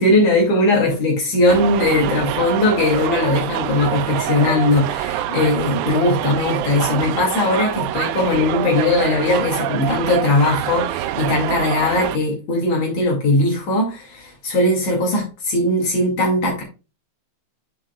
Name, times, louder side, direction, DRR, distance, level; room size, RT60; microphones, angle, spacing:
voice 1, 0.0-16.6, left 2 dB, 70° left, -1 dB, 3.8 m, -19 dB
sound 1, 1.5-12.2, right 12 dB, 85° right, 2.1 m, -25 dB
9.0 x 7.6 x 2.3 m, 0.31 s
omnidirectional pair, 3.6 m